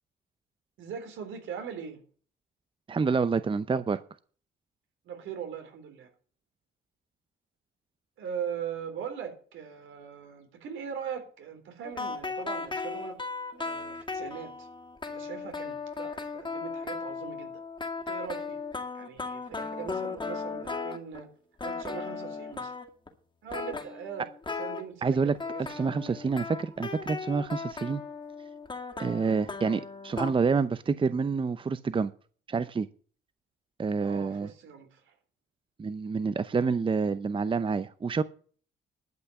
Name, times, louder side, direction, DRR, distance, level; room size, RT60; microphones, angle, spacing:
voice 1, 0.8-2.0 5.0-6.1 8.2-13.2 13.6-14.7 15.0-17.6 18.0-18.6 18.9-21.3 21.6-22.7 23.4-24.3 24.6-26.2 34.0-35.1, right 7 dB, 80° right, 5 dB, 3.8 m, -40 dB
voice 2, 2.9-4.0 25.0-25.3 25.7-28.0 29.0-32.1 32.5-32.9 33.8-34.5 35.8-38.2, right 5 dB, 25° right, 14 dB, 0.7 m, -28 dB
sound 1, 11.8-21.3 21.6-23.1 23.5-24.8 25.3-30.3, left 4 dB, 25° left, 2.2 m, -36 dB
12.0 x 5.8 x 9.2 m, 0.42 s
cardioid pair, 90°, 20 cm